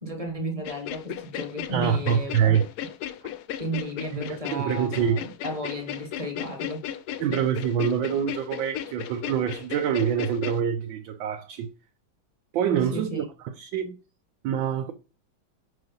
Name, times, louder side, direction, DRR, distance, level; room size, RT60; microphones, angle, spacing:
voice 1, 0.0-2.6 3.6-6.8 12.8-13.2, right 1 dB, 20° right, 1.3 m, -34 dB
sound 1, 0.6-10.6, left 11 dB, 70° left, 1.0 m, -35 dB
voice 2, 1.7-2.7 4.1-5.2 7.2-11.7 12.5-13.2 13.6-13.9 14.4-14.9, right 8 dB, 80° right, 1.4 m, -25 dB
5.8 x 4.8 x 4.0 m
omnidirectional pair, 2.1 m